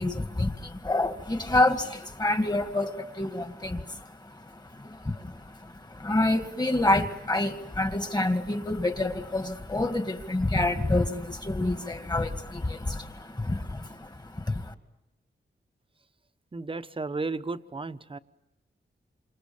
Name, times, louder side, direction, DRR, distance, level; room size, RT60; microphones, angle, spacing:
voice 1, 0.0-14.7, left 2 dB, 20° left, 8 dB, 2.1 m, -28 dB
voice 2, 16.5-18.2, right 3 dB, 25° right, 10 dB, 1.0 m, -33 dB
29.0 x 27.0 x 7.2 m, 0.92 s
wide cardioid pair, 125°, 19 cm